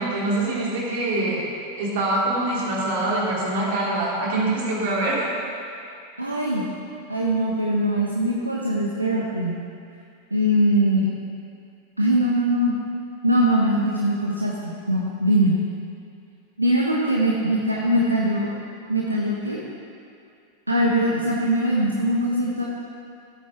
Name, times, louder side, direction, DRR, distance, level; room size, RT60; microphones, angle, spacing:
voice 1, 0.0-1.4 1.8-5.3, right 2 dB, 55° right, -5 dB, 3.1 m, -24 dB
voice 2, 6.2-6.7 7.1-9.6 10.3-11.1 12.0-12.8 13.2-15.6 16.6-18.5 18.9-19.6 20.7-22.6, right 1 dB, 85° right, -4 dB, 1.1 m, -21 dB
15.5 x 8.5 x 3.6 m, 2.4 s
figure-of-eight pair, 90°, 0 cm